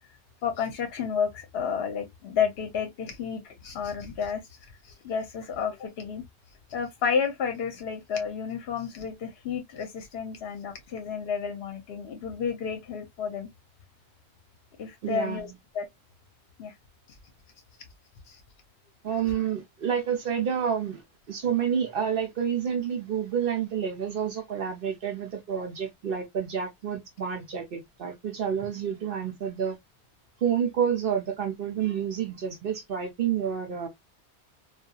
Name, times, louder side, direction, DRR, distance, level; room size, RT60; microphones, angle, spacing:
voice 1, 0.4-6.2 6.7-13.5 14.8-15.9 16.6-16.7 18.3-18.4, left 6 dB, 70° left, 0.8 m, -31 dB
voice 2, 15.0-15.5 19.0-29.8 30.4-33.9, right 8 dB, 60° right, 0.8 m, -29 dB
2.7 x 2.3 x 2.2 m
omnidirectional pair, 1.1 m